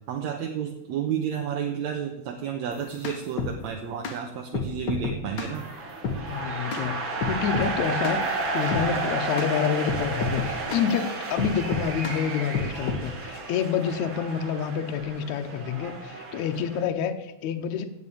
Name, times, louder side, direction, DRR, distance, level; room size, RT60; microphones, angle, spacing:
voice 1, 0.1-5.7, right 8 dB, 75° right, 3 dB, 2.2 m, -31 dB
sound 1, 2.7-3.6 4.0-4.2 4.5-5.6 6.0-6.2 6.7-6.9 7.2-7.7 8.0-8.2 8.7-8.9 9.4-9.5 9.9-10.9 11.4-12.2 12.5-13.1, left 4 dB, 50° left, 1.4 m, -30 dB
sound 2, 5.3-16.8, right 3 dB, 45° right, 2.2 m, -32 dB
voice 2, 6.3-17.9, left 8 dB, 75° left, 6 dB, 2.1 m, -28 dB
15.0 x 5.5 x 8.6 m, 0.92 s
omnidirectional pair, 3.5 m